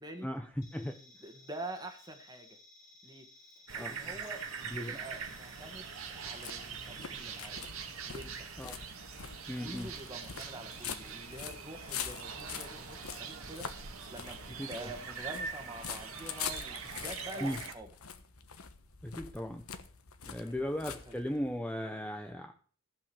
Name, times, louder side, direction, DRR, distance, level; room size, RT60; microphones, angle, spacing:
voice 1, 0.2-1.0 3.7-4.0 4.7-5.0 8.6-8.8 9.5-9.9 14.6-14.7 17.4-17.6 19.0-19.6 20.2-22.5, equal, 5° left, 6 dB, 0.7 m, -37 dB
sound 1, 0.6-7.5, left 3 dB, 45° left, 4.6 m, -58 dB
voice 2, 1.0-2.6 3.0-3.3 3.7-5.9 6.1-7.6 8.1-8.5 9.6-17.9 20.4-21.2, right 1 dB, 20° right, 5 dB, 1.8 m, -47 dB
sound 2, 3.7-17.7, right 6 dB, 75° right, 2.0 m, -43 dB
sound 3, 5.2-21.6, left 7 dB, 85° left, 1.2 m, -45 dB
15.5 x 5.5 x 7.1 m, 0.43 s
head